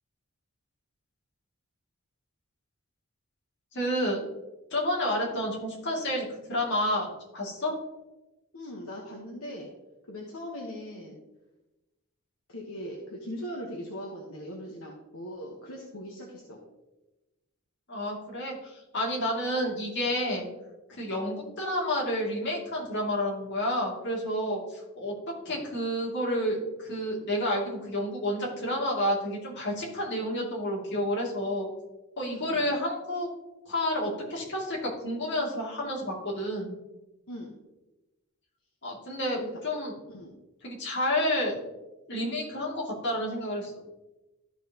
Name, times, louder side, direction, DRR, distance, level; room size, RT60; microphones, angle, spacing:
voice 1, 3.7-4.2 4.7-7.1 7.3-7.7 17.9-20.5 20.9-25.1 25.4-31.7 32.2-33.3 33.7-36.7 38.8-39.9 40.6-41.6 42.1-43.7, left 1 dB, 55° left, -2 dB, 2.5 m, -30 dB
voice 2, 8.5-9.7 10.1-11.2 12.5-16.6 32.3-32.7 37.3-37.5 39.4-39.5 40.1-40.3, equal, 75° left, -1 dB, 1.3 m, -40 dB
13.5 x 5.7 x 2.9 m, 1.0 s
head